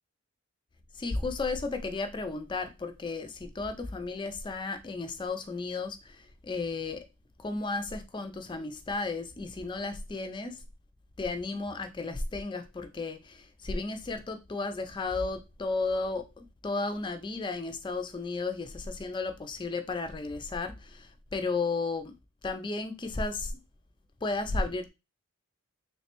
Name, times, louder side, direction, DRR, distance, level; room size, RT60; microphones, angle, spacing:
voice 1, 0.9-7.0 7.4-10.6 11.2-22.1 22.4-23.5 24.2-24.9, left 3 dB, 20° left, 0.3 m, -34 dB
3.2 x 3.1 x 2.9 m
head